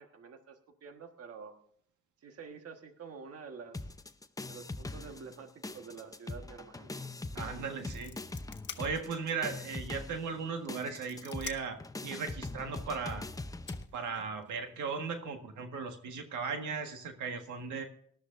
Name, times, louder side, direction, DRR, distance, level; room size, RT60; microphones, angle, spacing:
voice 1, 0.0-1.5 2.2-3.8 4.5-6.9, right 5 dB, 55° right, 6 dB, 1.5 m, -48 dB
sound 1, 3.7-5.4 5.6-13.9, left 2 dB, 10° left, 0.7 m, -42 dB
sound 2, 7.1-7.3 7.6-9.4 9.8-9.9 10.6-11.9 13.0-13.1 13.7-14.7, left 7 dB, 35° left, 1.3 m, -47 dB
voice 2, 7.3-8.2 8.8-13.3 13.9-17.8, right 5 dB, 80° right, 6 dB, 1.6 m, -37 dB
19.0 x 13.0 x 2.6 m, 0.65 s
cardioid pair, 90°, 30 cm